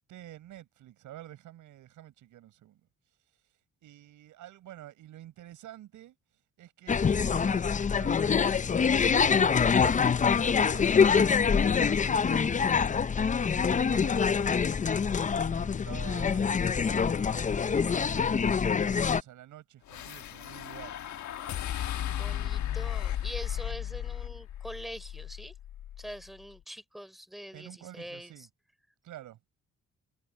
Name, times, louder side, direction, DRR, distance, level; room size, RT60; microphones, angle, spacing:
voice 1, 0.0-2.8 3.8-6.2 6.6-9.6 9.9-12.9 13.3-14.8 15.3-21.0 27.5-28.5 29.0-29.4, right 13 dB, 80° right, 6.5 m, -49 dB
sound 1, 6.9-19.2, left 6 dB, 25° left, 0.5 m, -25 dB
sound 2, 19.9-26.2, left 11 dB, 70° left, 1.3 m, -35 dB
voice 2, 22.1-25.5 26.0-28.5, equal, ahead, 3.8 m, -44 dB
cardioid pair, 90°, 30 cm